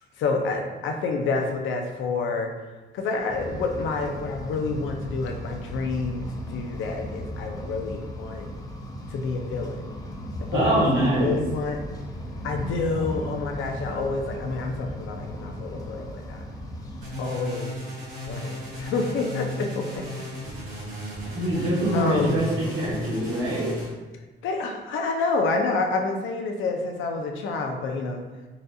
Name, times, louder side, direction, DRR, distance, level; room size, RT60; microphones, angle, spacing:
voice 1, 0.2-2.5 2.9-8.5 9.1-9.9 10.4-11.8 12.4-16.5 17.2-17.7 18.3-20.1 21.9-22.4 24.4-28.2, left 3 dB, 80° left, 3 dB, 0.5 m, -28 dB
sound 1, 3.3-17.1, equal, 20° left, 0.3 m, -36 dB
voice 2, 10.5-11.4 21.3-23.7, right 1 dB, 70° right, -6 dB, 1.2 m, -24 dB
sound 2, 17.0-23.9, equal, 90° right, 1.4 m, -35 dB
4.0 x 2.6 x 2.3 m, 1.2 s
cardioid pair, 170°, 20 cm